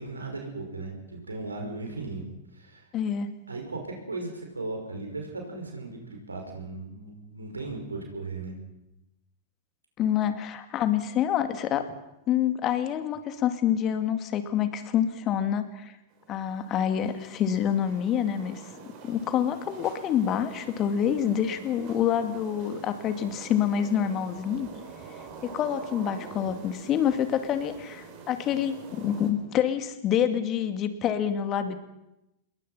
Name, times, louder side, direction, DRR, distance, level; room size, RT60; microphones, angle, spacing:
voice 1, 0.0-2.2 2.5-2.9 3.5-8.5, right 3 dB, 80° right, 2 dB, 5.6 m, -37 dB
voice 2, 2.9-3.3 10.0-11.8 12.3-15.9 16.3-18.6 19.0-24.7 25.4-31.8, left 9 dB, 35° left, 9 dB, 2.5 m, -27 dB
sound 1, 16.1-29.3, right 5 dB, 40° right, 6.4 m, -45 dB
27.0 x 21.5 x 5.8 m, 0.91 s
figure-of-eight pair, 90°, 0 cm